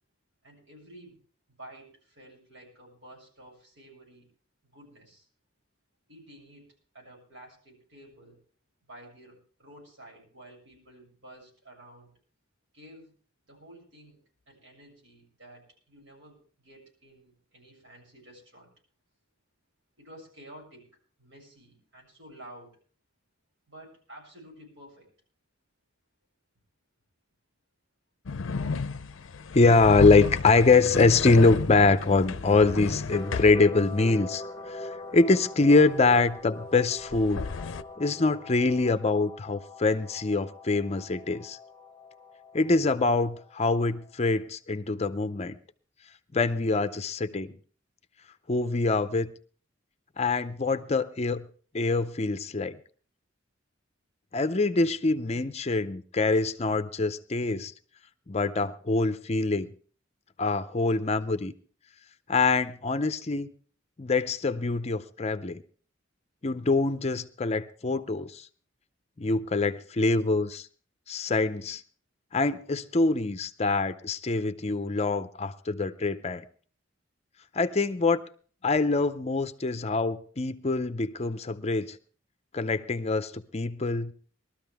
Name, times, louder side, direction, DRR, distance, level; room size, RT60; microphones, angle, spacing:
voice 1, 0.4-1.2 1.5-4.3 4.6-5.3 6.1-6.7 6.9-8.4 8.9-12.1 12.7-13.1 13.5-14.2 14.5-18.7 20.0-20.9 21.2-22.8 23.7-25.1, right 1 dB, 70° right, 7.4 m, -51 dB
sound 1, 28.3-33.6 37.0-37.8, left 4 dB, 75° left, 0.6 m, -32 dB
voice 2, 29.5-37.5 38.0-41.6 42.5-45.6 46.3-47.6 48.5-49.3 50.2-51.4 51.7-52.8 54.3-57.7 58.3-59.7 60.4-61.5 62.3-63.5 64.0-65.6 66.4-68.5 69.2-70.7 71.1-71.8 72.3-76.4 77.5-78.2 78.6-82.0 82.5-84.1, left 3 dB, 35° left, 0.5 m, -24 dB
sound 2, 30.9-44.5, left 2 dB, 20° left, 0.9 m, -43 dB
21.0 x 13.0 x 3.5 m
head